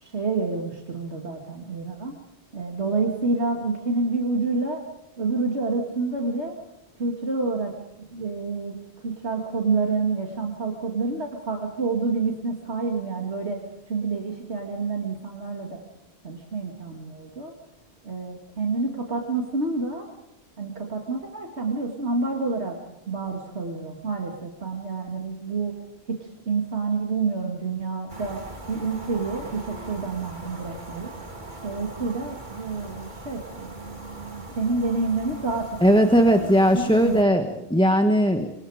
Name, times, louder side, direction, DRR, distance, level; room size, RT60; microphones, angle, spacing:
voice 1, 0.0-2.2 2.5-4.8 5.2-6.5 7.0-7.7 8.1-8.8 9.0-13.6 13.9-15.8 16.2-17.5 18.0-20.0 20.6-22.8 23.1-25.7 26.1-28.4 28.7-31.1 31.6-36.1 36.4-37.5, right 3 dB, 90° right, 1 dB, 2.7 m, -28 dB
sound 1, 28.1-37.2, right 1 dB, 45° right, 2.7 m, -41 dB
voice 2, 35.8-38.5, equal, 5° left, 5 dB, 1.3 m, -19 dB
26.0 x 26.0 x 5.0 m, 0.85 s
omnidirectional pair, 1.1 m